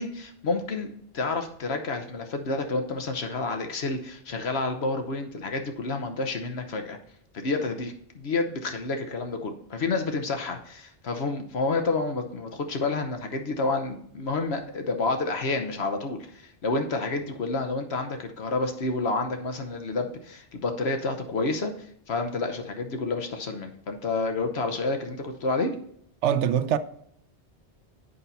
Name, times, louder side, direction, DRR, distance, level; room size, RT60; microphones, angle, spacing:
voice 1, 0.0-7.0 7.3-25.7, left 3 dB, 65° left, 1.1 m, -29 dB
voice 2, 26.2-26.8, right 9 dB, 90° right, 0.9 m, -23 dB
8.3 x 5.6 x 4.0 m
omnidirectional pair, 1.2 m